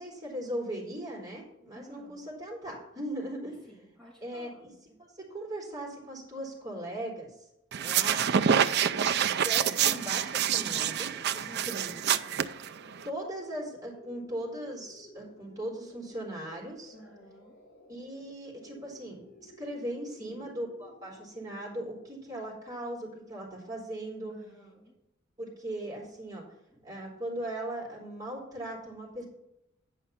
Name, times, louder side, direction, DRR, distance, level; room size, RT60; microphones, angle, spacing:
voice 1, 0.0-3.6 4.2-4.7 5.0-7.3 7.7-8.3 9.3-12.2 13.0-16.9 17.9-24.3 25.4-26.4 26.8-29.3, right 1 dB, 20° right, -4 dB, 3.6 m, -39 dB
voice 2, 1.7-2.3 3.6-5.0 11.5-12.0 16.9-17.5 20.2-20.5 24.3-25.0 26.7-26.8, equal, 5° left, -6 dB, 3.5 m, -53 dB
sound 1, 7.7-13.1, right 8 dB, 55° right, 0.4 m, -27 dB
sound 2, 9.6-22.4, equal, 50° left, 1.6 m, -56 dB
9.6 x 5.5 x 5.7 m, 0.86 s
head